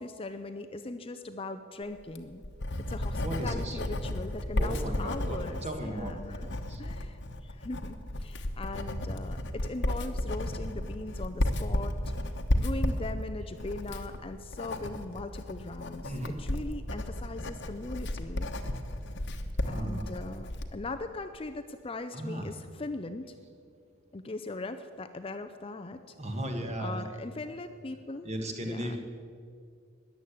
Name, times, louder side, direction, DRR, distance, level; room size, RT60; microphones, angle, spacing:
voice 1, 0.0-2.4 2.9-6.5 6.8-11.9 12.6-18.5 19.6-23.4 24.1-26.1 26.8-28.3 28.6-29.0, left 2 dB, 25° left, 8 dB, 0.5 m, -40 dB
Writing, 2.0-20.8, left 1 dB, 50° left, 1.1 m, -33 dB
voice 2, 3.2-3.8 4.6-6.8 16.0-16.3 19.6-20.1 22.1-22.5 26.2-27.0 28.2-29.0, right 1 dB, 30° right, 4 dB, 1.7 m, -36 dB
14.0 x 10.0 x 8.4 m, 2.3 s
head